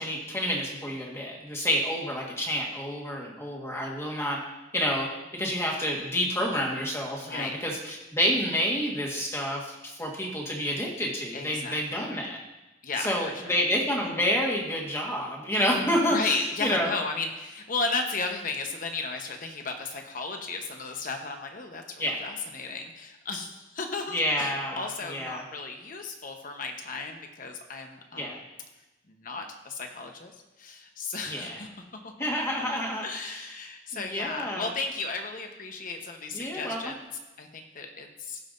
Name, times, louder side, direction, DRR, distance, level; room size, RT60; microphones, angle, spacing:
voice 1, 0.0-4.4 4.7-5.1 5.3-12.4 13.0-16.9 22.0-22.2 24.1-25.4 28.1-28.4 31.3-31.6 32.2-33.1 33.3-33.4 33.9-34.7 36.3-36.8, equal, 15° left, -2 dB, 1.5 m, -29 dB
voice 2, 7.2-7.6 11.3-12.1 12.8-13.5 16.1-28.4 29.1-32.1 33.0-37.1 37.4-38.4, left 3 dB, 50° left, 4 dB, 1.0 m, -35 dB
16.0 x 5.7 x 2.6 m, 1.0 s
head